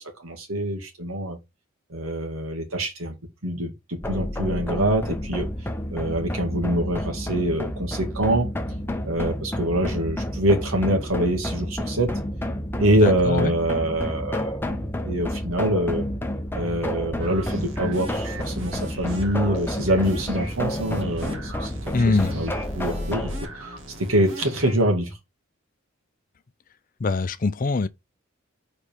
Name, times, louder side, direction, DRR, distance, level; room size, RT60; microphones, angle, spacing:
voice 1, 0.2-1.4 1.9-3.2 3.4-5.5 5.9-8.5 9.0-12.2 12.8-14.6 15.0-16.0 16.5-21.7 22.0-23.5 24.0-25.1, right 1 dB, 85° right, 2.1 m, -25 dB
sound 1, 4.0-23.4, left 1 dB, 10° left, 0.7 m, -30 dB
voice 2, 12.9-13.5 21.9-22.3 27.0-27.9, left 3 dB, 40° left, 0.4 m, -23 dB
sound 2, 17.2-24.7, right 1 dB, 65° right, 1.9 m, -39 dB
4.9 x 4.2 x 5.2 m
head